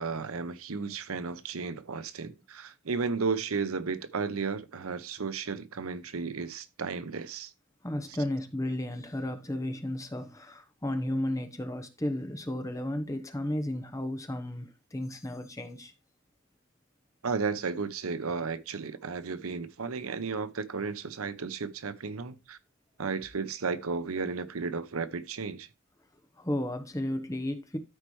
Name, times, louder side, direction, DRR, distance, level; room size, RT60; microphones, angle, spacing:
voice 1, 0.0-7.5 17.2-22.6 23.0-25.7, right 4 dB, 80° right, 0.8 m, -34 dB
voice 2, 7.8-15.9 26.4-27.8, left 1 dB, 15° left, 0.9 m, -33 dB
13.5 x 4.5 x 3.1 m
head